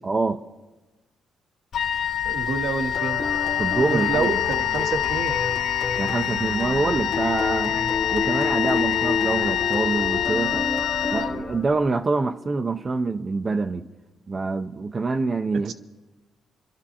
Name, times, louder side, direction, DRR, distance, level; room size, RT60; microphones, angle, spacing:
voice 1, 0.0-0.4 3.6-4.3 6.0-7.8 8.1-10.7 11.1-13.9 14.3-15.7, right 3 dB, 30° right, 0.5 m, -25 dB
Wind instrument woodwind instrument, 1.7-11.8, left 10 dB, 60° left, 0.4 m, -26 dB
voice 2, 2.2-3.2 3.8-5.4 7.7-7.9 15.5-15.7, right 5 dB, 70° right, 0.8 m, -28 dB
sound 1, 2.9-11.9, left 4 dB, 85° left, 1.3 m, -29 dB
26.5 x 12.0 x 2.9 m
cardioid pair, 90°, 0 cm